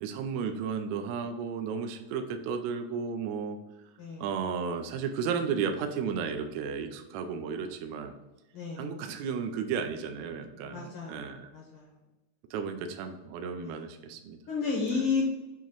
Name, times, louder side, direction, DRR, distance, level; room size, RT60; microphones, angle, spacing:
voice 1, 0.0-3.6 4.2-8.1 8.8-11.5 12.5-14.4 14.9-15.1, right 6 dB, 80° right, 6 dB, 1.7 m, -33 dB
voice 2, 8.5-8.9 10.6-11.2 11.5-11.9 13.5-13.8 14.5-15.3, left 4 dB, 65° left, -2 dB, 1.4 m, -32 dB
7.1 x 3.0 x 6.0 m, 1.0 s
omnidirectional pair, 3.6 m